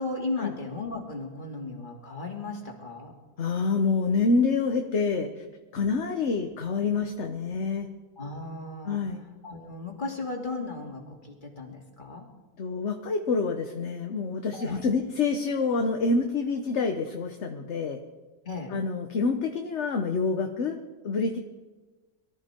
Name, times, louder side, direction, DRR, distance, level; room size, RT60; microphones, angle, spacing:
voice 1, 0.0-3.1 8.2-9.0 9.4-12.3 14.5-14.8 18.4-18.7, left 3 dB, 30° left, 0 dB, 2.9 m, -35 dB
voice 2, 3.4-5.3 5.7-7.9 8.8-9.2 12.6-18.0 18.7-20.8 21.0-21.4, left 4 dB, 50° left, 5 dB, 1.2 m, -27 dB
23.0 x 14.0 x 4.5 m, 1.3 s
omnidirectional pair, 1.7 m